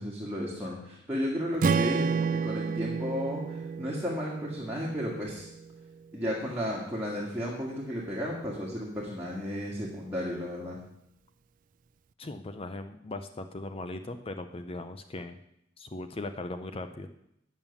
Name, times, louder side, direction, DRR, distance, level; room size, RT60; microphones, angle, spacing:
voice 1, 0.0-5.5 6.1-10.8, equal, 10° right, -6 dB, 1.8 m, -33 dB
Strum, 1.6-5.9, right 5 dB, 40° right, 0.4 m, -31 dB
voice 2, 12.2-15.4 15.8-17.1, left 2 dB, 30° left, 9 dB, 0.5 m, -39 dB
9.0 x 7.4 x 7.0 m, 0.78 s
head